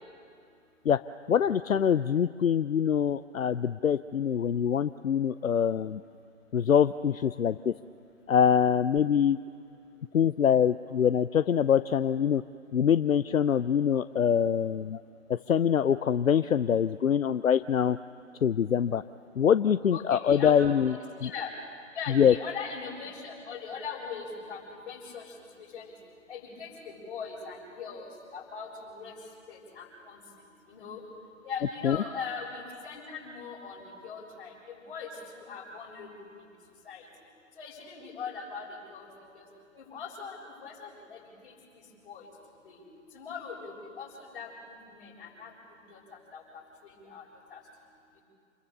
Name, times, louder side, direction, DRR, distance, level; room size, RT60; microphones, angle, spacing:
voice 1, 1.3-6.0 6.5-7.7 8.3-9.4 10.1-12.4 12.7-15.0 15.3-18.0 18.4-19.0 19.4-20.9 21.2-21.3 22.1-22.3 31.8-32.0, left 8 dB, 80° left, 13 dB, 0.7 m, -24 dB
voice 2, 19.9-20.6 20.9-21.5 21.9-25.9 26.3-28.1 28.3-29.2 29.5-30.2 30.7-31.0 31.4-36.5 36.9-37.1 37.6-39.1 39.3-39.5 39.8-42.3 42.6-42.8 43.1-45.5 45.9-47.2 47.5-47.6, left 5 dB, 40° left, -2 dB, 7.0 m, -41 dB
28.0 x 21.0 x 6.8 m, 2.4 s
figure-of-eight pair, 145°, 40 cm